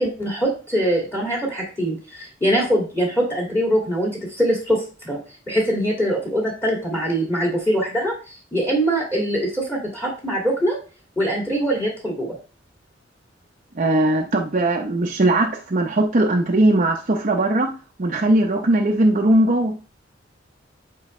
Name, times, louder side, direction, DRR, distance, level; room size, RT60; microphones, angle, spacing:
voice 1, 0.0-5.2 5.5-10.8 11.2-12.3, equal, 10° left, -2 dB, 2.2 m, -23 dB
voice 2, 13.7-17.7 18.0-19.7, right 1 dB, 45° right, 1 dB, 0.7 m, -19 dB
9.8 x 4.6 x 3.2 m, 0.36 s
head